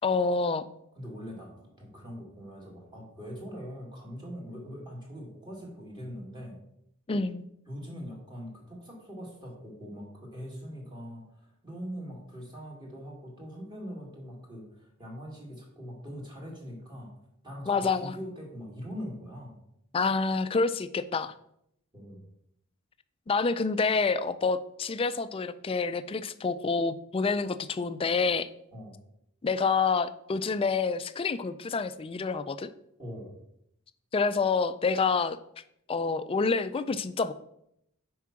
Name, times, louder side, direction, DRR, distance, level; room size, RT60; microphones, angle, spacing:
voice 1, 0.0-0.7 7.1-7.5 17.7-18.2 19.9-21.3 23.3-28.5 29.4-32.7 34.1-35.4 35.9-37.3, left 4 dB, 25° left, 13 dB, 0.3 m, -27 dB
voice 2, 1.0-6.6 7.7-17.1 17.4-19.6 21.9-22.2 28.7-29.0 33.0-33.3, equal, 20° right, -2 dB, 2.0 m, -42 dB
6.0 x 4.7 x 5.8 m, 0.76 s
head